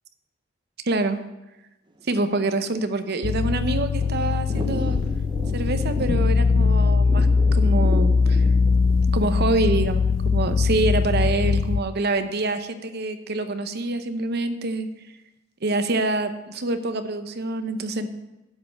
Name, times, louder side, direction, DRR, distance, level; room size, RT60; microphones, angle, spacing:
voice 1, 0.8-1.2 2.1-5.0 5.5-8.4 9.1-14.9 15.6-18.1, right 2 dB, 55° right, 9 dB, 0.8 m, -26 dB
Thunder / Rain, 2.0-9.1, equal, 25° right, 1.0 m, -36 dB
sound 1, 3.2-11.8, left 4 dB, 80° left, 0.5 m, -21 dB
12.0 x 5.5 x 7.8 m, 1.0 s
head